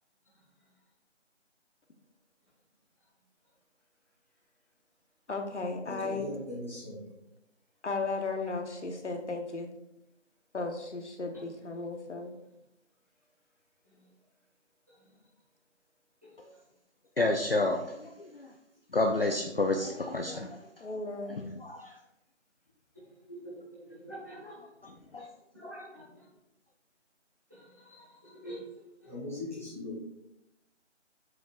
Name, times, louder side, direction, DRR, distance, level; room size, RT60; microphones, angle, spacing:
voice 1, 5.3-6.3 7.8-9.7 10.5-12.3 20.8-21.4, left 3 dB, 70° left, 4 dB, 1.1 m, -35 dB
voice 2, 5.8-7.1 29.1-30.0, left 2 dB, 10° left, -11 dB, 1.4 m, -39 dB
voice 3, 17.2-18.5 18.9-20.7 21.3-22.0 24.8-25.3, left 2 dB, 50° left, 4 dB, 0.5 m, -30 dB
voice 4, 23.7-24.5 25.2-25.3 25.5-26.2 27.5-28.1 28.4-28.6 29.0-29.1, right 1 dB, 15° right, -10 dB, 1.3 m, -46 dB
7.2 x 6.0 x 2.5 m, 0.86 s
figure-of-eight pair, 180°, 36 cm